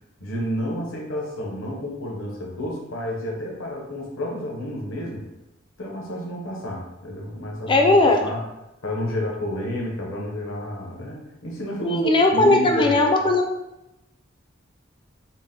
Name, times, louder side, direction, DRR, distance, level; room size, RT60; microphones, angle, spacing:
voice 1, 0.2-5.2 5.8-7.9 8.2-8.4 8.8-13.3, left 1 dB, 75° left, -1 dB, 0.9 m, -30 dB
voice 2, 7.7-8.2 11.8-13.4, left 2 dB, 25° left, 2 dB, 0.4 m, -18 dB
3.9 x 2.1 x 3.6 m, 0.92 s
head